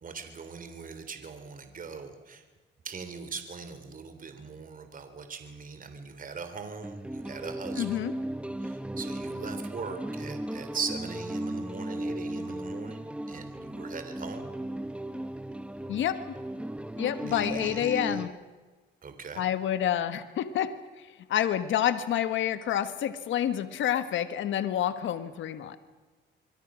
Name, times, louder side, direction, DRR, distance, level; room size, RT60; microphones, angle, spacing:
voice 1, 0.0-2.4 2.8-8.0 8.6-13.0 13.3-14.5 17.3-18.2 19.0-19.5, right 5 dB, 45° right, 8 dB, 3.5 m, -40 dB
sound 1, 6.8-18.3, right 1 dB, 5° right, 0.8 m, -36 dB
voice 2, 7.8-8.1 15.9-16.2 17.0-18.3 19.4-25.8, left 10 dB, 75° left, 11 dB, 1.4 m, -28 dB
25.5 x 23.0 x 6.3 m, 1.3 s
cardioid pair, 90°, 20 cm